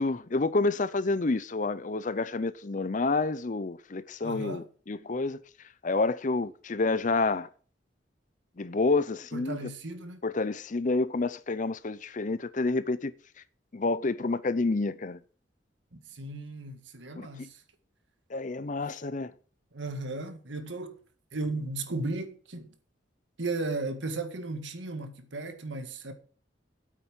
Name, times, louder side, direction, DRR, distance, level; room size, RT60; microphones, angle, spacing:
voice 1, 0.0-5.4 5.8-7.5 8.6-9.6 10.2-13.1 13.7-15.2 17.2-17.5 18.3-19.3, left 3 dB, 40° left, 0.6 m, -29 dB
voice 2, 4.2-4.7 9.3-10.2 15.9-17.6 19.7-21.0 21.3-22.7 23.4-26.1, right 2 dB, 75° right, 1.8 m, -35 dB
9.1 x 8.4 x 6.2 m
head